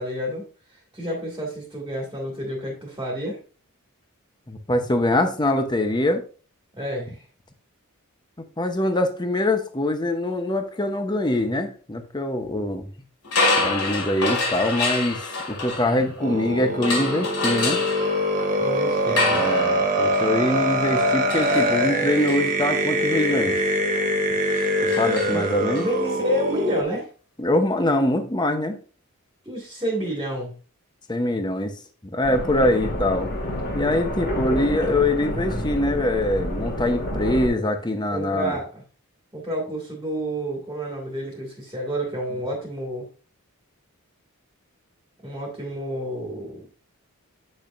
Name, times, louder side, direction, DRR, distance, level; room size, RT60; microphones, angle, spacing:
voice 1, 0.0-3.4 6.7-7.2 18.6-19.5 25.3-25.4 25.8-27.1 29.4-30.6 38.1-38.8 39.3-43.0 45.2-46.6, equal, 15° right, -2 dB, 1.9 m, -29 dB
voice 2, 4.5-6.2 8.6-12.8 13.6-15.2 15.5-17.8 19.3-23.6 24.9-25.9 27.4-28.8 31.1-31.7 32.1-33.3 33.7-38.6, left 1 dB, 20° left, 7 dB, 0.8 m, -23 dB
sound 1, 13.2-16.3 16.8-25.8, left 3 dB, 90° left, 2.2 m, -28 dB
sound 2, 16.2-26.8, right 1 dB, 35° right, 1.1 m, -23 dB
sound 3, 32.2-37.5, equal, 50° left, 2.1 m, -28 dB
8.4 x 6.4 x 2.5 m, 0.37 s
head